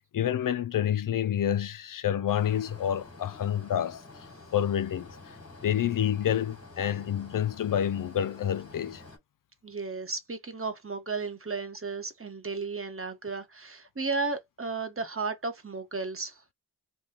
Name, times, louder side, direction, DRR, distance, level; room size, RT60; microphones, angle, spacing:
voice 1, 0.0-4.0 4.5-5.1 5.6-9.0, left 10 dB, 45° left, 0.4 m, -28 dB
sound 1, 2.3-9.2, left 3 dB, 30° left, 1.6 m, -49 dB
voice 2, 9.6-16.5, right 4 dB, 30° right, 1.1 m, -34 dB
3.3 x 2.3 x 2.8 m
cardioid pair, 45°, 46 cm